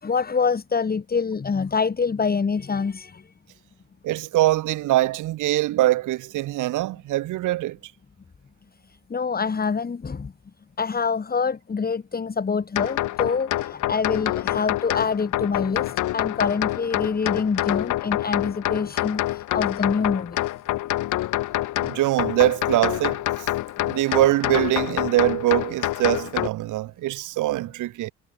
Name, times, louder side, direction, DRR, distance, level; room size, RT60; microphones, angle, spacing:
voice 1, 0.0-3.3 8.9-10.3 10.8-20.4, left 5 dB, 30° left, 2.2 m, -26 dB
voice 2, 4.0-7.8 21.8-23.5 23.8-28.1, right 16 dB, 80° right, 1.0 m, -23 dB
sound 1, 12.8-26.5, left 15 dB, 85° left, 4.4 m, -26 dB
cardioid pair, 90°, 30 cm